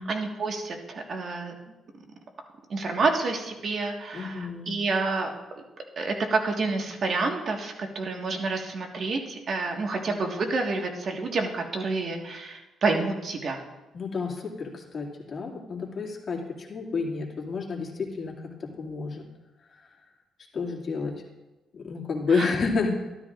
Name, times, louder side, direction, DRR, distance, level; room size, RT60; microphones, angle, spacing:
voice 1, 0.0-1.5 2.7-5.3 6.0-13.6 22.3-22.5, right 3 dB, 50° right, 2 dB, 1.6 m, -28 dB
voice 2, 4.1-4.7 13.9-19.2 19.7-19.8 20.5-21.1 21.7-22.9, left 4 dB, 45° left, -1 dB, 2.3 m, -30 dB
12.5 x 12.5 x 2.5 m, 1.1 s
cardioid pair, 90°, 0 cm